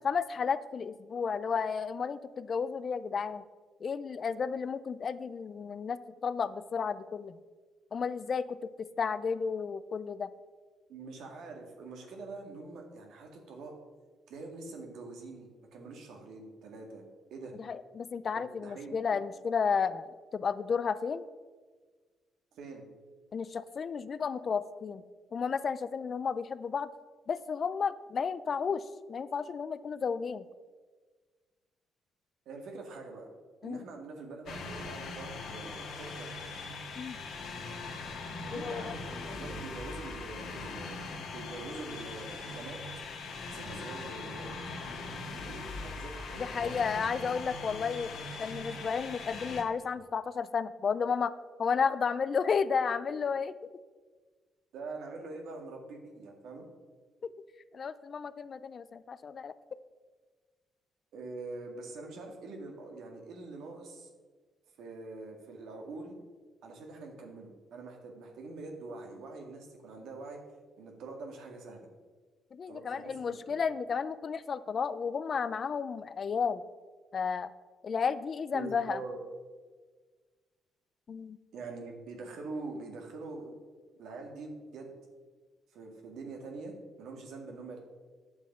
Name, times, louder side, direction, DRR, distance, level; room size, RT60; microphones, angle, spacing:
voice 1, 0.0-3.4 3.8-7.4 7.9-10.3 17.6-21.3 23.3-25.0 25.3-26.9 27.3-28.8 29.1-30.4 33.6-33.8 37.0-37.2 38.5-38.9 46.4-48.1 48.4-51.3 51.6-53.5 57.7-59.5 72.5-76.6 77.1-77.5 77.8-79.0 81.1-81.4, left 6 dB, 45° left, 15 dB, 0.5 m, -32 dB
voice 2, 10.9-13.7 14.3-17.0 17.3-17.5 18.3-19.0 22.5-22.8 32.5-33.3 33.6-36.3 38.4-39.0 39.3-41.0 41.3-42.8 43.4-44.5 44.9-46.8 54.7-56.7 61.1-64.1 64.8-66.2 66.6-70.4 70.8-71.9 72.7-73.6 78.5-79.2 81.5-83.5 84.0-85.0 85.7-87.8, right 3 dB, 80° right, 2 dB, 2.0 m, -44 dB
sound 1, 34.5-49.6, left 3 dB, 70° left, 1.8 m, -41 dB
9.4 x 7.1 x 6.0 m, 1.4 s
cardioid pair, 90°, 0 cm